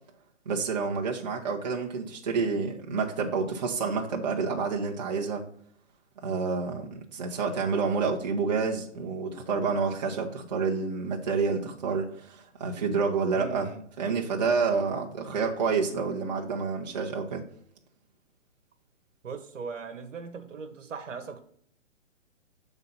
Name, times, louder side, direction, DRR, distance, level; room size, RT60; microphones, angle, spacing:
voice 1, 0.5-5.5 6.2-13.7 14.0-17.4, right 5 dB, 35° right, 0.9 m, -29 dB
voice 2, 13.3-13.8 19.2-21.4, right 5 dB, 80° right, 1.2 m, -39 dB
7.1 x 4.0 x 5.6 m
hypercardioid pair, 175°, 37 cm